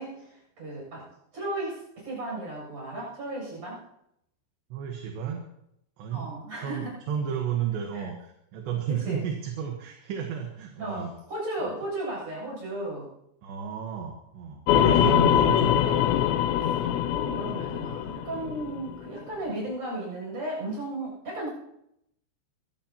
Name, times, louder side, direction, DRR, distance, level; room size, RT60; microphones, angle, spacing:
voice 1, 0.0-3.8 6.1-7.0 8.9-9.2 10.8-13.1 14.7-15.2 17.1-21.5, right 1 dB, 35° right, -3 dB, 8.7 m, -35 dB
voice 2, 4.7-5.5 6.0-6.3 6.6-11.1 11.6-11.7 13.4-16.0, right 8 dB, 70° right, 2 dB, 3.3 m, -32 dB
sound 1, 14.7-19.1, left 11 dB, 80° left, 2.8 m, -23 dB
23.5 x 16.0 x 2.9 m, 0.79 s
omnidirectional pair, 5.5 m